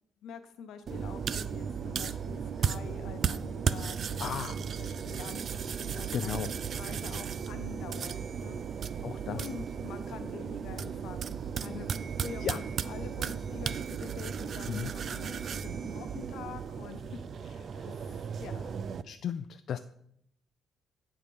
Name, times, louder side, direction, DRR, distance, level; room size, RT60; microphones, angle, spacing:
voice 1, 0.2-4.4 4.8-9.0 9.3-18.8, left 7 dB, 80° left, 8 dB, 0.8 m, -46 dB
sound 1, 0.8-19.0, left 2 dB, 30° left, 1.4 m, -55 dB
sound 2, 0.9-19.0, right 7 dB, 55° right, 0.3 m, -35 dB
voice 2, 4.2-4.6 6.1-6.5 9.0-9.5 12.4-12.6 14.7-14.9 17.7-17.9 19.0-19.8, left 8 dB, 65° left, 9 dB, 0.3 m, -35 dB
9.1 x 3.7 x 6.1 m, 0.73 s
cardioid pair, 90°, 0 cm